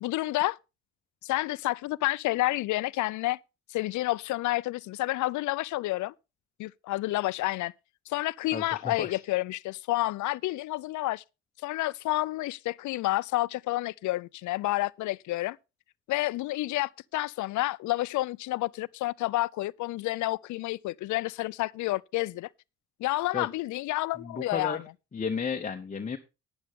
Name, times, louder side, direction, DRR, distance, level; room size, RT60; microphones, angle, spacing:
voice 1, 0.0-0.6 1.2-3.4 3.7-6.1 6.6-7.7 8.1-11.2 11.6-15.6 16.1-22.5 23.0-24.8, left 18 dB, 75° left, 0.4 m, -29 dB
voice 2, 8.5-9.2 23.3-23.5 24.2-24.8 25.1-26.2, left 6 dB, 25° left, 0.8 m, -33 dB
11.5 x 9.6 x 3.6 m
cardioid pair, 90°, 30 cm